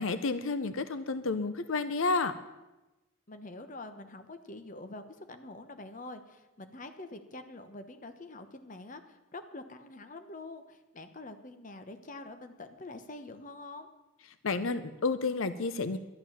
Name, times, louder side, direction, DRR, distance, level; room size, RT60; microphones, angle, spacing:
voice 1, 0.0-2.3 14.4-16.0, left 3 dB, 80° left, 12 dB, 0.7 m, -30 dB
voice 2, 3.3-13.9, left 2 dB, 40° left, 8 dB, 1.0 m, -46 dB
11.5 x 11.0 x 7.2 m, 1.0 s
head